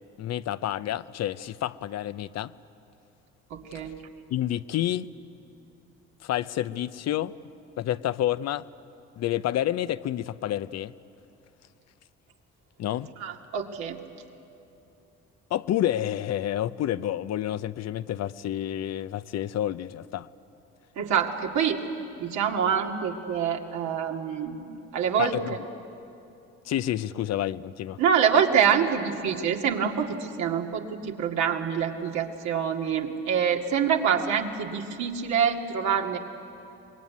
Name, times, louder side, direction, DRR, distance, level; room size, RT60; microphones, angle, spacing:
voice 1, 0.2-2.5 4.3-5.1 6.2-7.3 7.8-8.7 9.2-10.9 12.8-13.1 15.5-20.3 25.2-25.6 26.6-28.0, left 12 dB, 60° left, 14 dB, 0.7 m, -29 dB
voice 2, 3.5-4.0 13.2-14.0 21.0-21.8 22.2-25.6 28.0-36.2, right 7 dB, 75° right, 2 dB, 2.1 m, -26 dB
24.0 x 21.0 x 9.5 m, 2.7 s
supercardioid pair, 65°, 29 cm